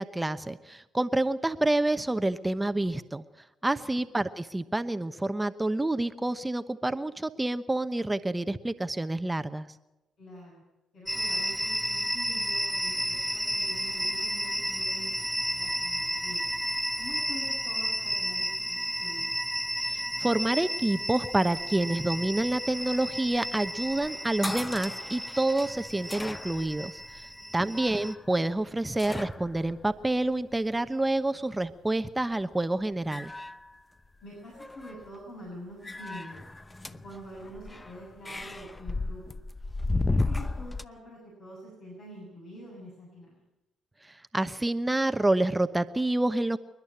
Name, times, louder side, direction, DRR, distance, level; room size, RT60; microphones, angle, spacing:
voice 1, 0.0-3.2 3.6-9.7 19.9-27.3 27.5-33.3 44.0-46.6, right 2 dB, 15° right, 11 dB, 1.0 m, -28 dB
voice 2, 10.2-10.6 10.9-16.4 17.0-19.3 27.4-27.5 34.2-36.5 37.0-39.4 39.9-43.4, equal, 60° left, -4 dB, 7.0 m, -46 dB
sound 1, 11.1-28.1, equal, ahead, 1.1 m, -32 dB
sound 2, 21.3-30.9 32.2-32.5 32.9-34.2 34.5-35.2 35.8-40.9, left 2 dB, 20° left, 0.8 m, -36 dB
27.5 x 11.5 x 8.7 m, 1.0 s
hypercardioid pair, 50°, 0 cm